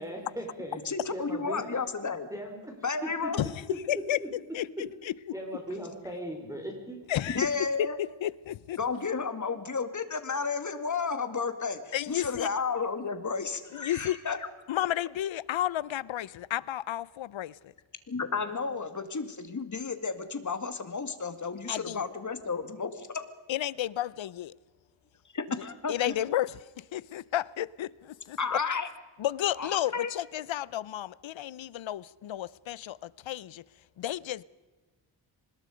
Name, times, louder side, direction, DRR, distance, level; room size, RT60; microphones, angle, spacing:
voice 1, 0.0-0.8 1.1-1.8 2.1-2.7 3.0-3.3 3.7-3.8 4.2-4.3 5.3-7.0, equal, 5° right, 4.5 m, -38 dB
voice 2, 0.9-2.3 2.8-3.4 7.3-8.0 8.8-14.5 18.1-23.3 25.3-26.1 28.4-28.9 29.6-30.1, left 5 dB, 40° left, 2.1 m, -32 dB
voice 3, 3.9-5.1 7.1-7.4 7.8-8.8 11.9-12.5 13.7-14.2 14.7-17.7 21.7-22.0 23.5-24.5 25.9-28.6 29.2-33.6 34.0-34.4, left 12 dB, 75° left, 0.7 m, -32 dB
25.5 x 20.5 x 5.2 m
cardioid pair, 95°, 47 cm